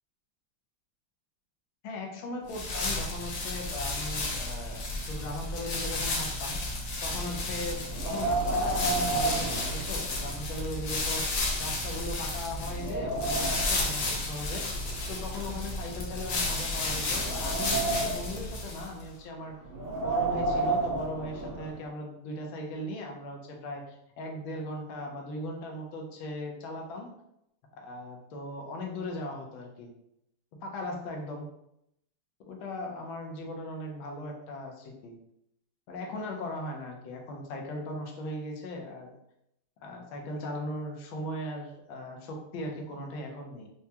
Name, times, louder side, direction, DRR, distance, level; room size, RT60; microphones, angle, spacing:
voice 1, 1.8-4.8 5.1-6.6 7.0-11.2 11.6-14.6 15.1-19.6 20.0-27.1 27.8-29.9 30.6-31.5 32.5-35.2 35.9-39.1 39.8-43.7, left 1 dB, 75° left, 1 dB, 1.4 m, -38 dB
sound 1, 2.5-19.0, left 2 dB, 90° left, 0.7 m, -32 dB
Wind, 7.9-10.5 10.8-10.9 11.6-11.7 12.2-13.8 14.7-16.2 16.8-18.4 19.6-21.8, right 2 dB, 80° right, 1.8 m, -31 dB
4.5 x 2.2 x 2.8 m, 0.79 s
omnidirectional pair, 2.4 m